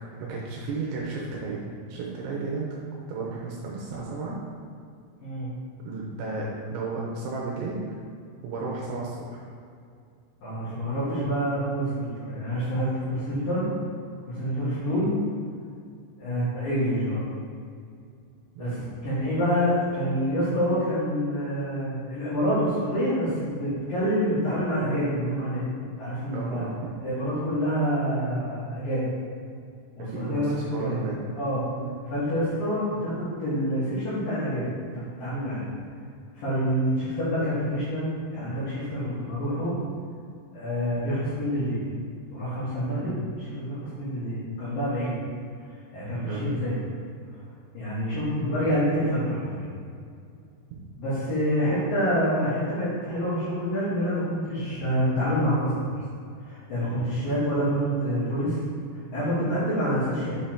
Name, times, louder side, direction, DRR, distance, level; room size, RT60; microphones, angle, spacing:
voice 1, 0.1-2.7 3.1-4.4 5.9-7.9 8.4-9.4 16.3-16.4 18.6-18.9 26.3-26.7 30.0-31.3 31.8-31.9 42.9-43.1 46.2-46.5, right 3 dB, 80° right, -4 dB, 2.9 m, -33 dB
voice 2, 10.4-13.7 14.3-15.1 16.2-17.2 18.6-18.8 19.0-25.7 26.0-26.6 27.0-29.1 30.0-31.0 31.4-31.6 32.1-34.7 34.9-35.6 36.3-39.8 40.5-41.8 42.3-43.1 43.4-45.1 45.9-46.8 47.7-49.7 51.0-56.0 56.4-58.6 59.1-60.4, equal, 60° left, -12 dB, 2.5 m, -27 dB
8.1 x 5.4 x 2.9 m, 2.3 s
omnidirectional pair, 5.9 m